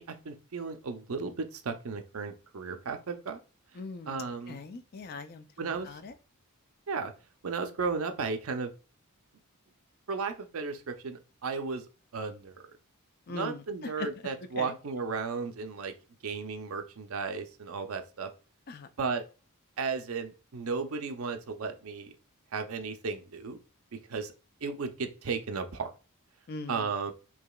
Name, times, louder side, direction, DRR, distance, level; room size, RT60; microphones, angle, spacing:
voice 1, 0.0-3.4 4.1-4.6 5.6-6.0 6.9-7.1 7.4-8.7 10.1-11.9 12.1-12.6 13.3-15.9 16.2-18.3 19.0-19.2 19.8-22.1 22.5-23.6 24.1-24.3 24.6-25.9 26.7-27.1, right 4 dB, 70° right, 0.6 m, -34 dB
voice 2, 3.7-6.1 13.3-14.1 14.6-14.8 18.7-18.9 26.5-27.1, left 3 dB, 45° left, 0.4 m, -41 dB
4.8 x 2.9 x 2.3 m
head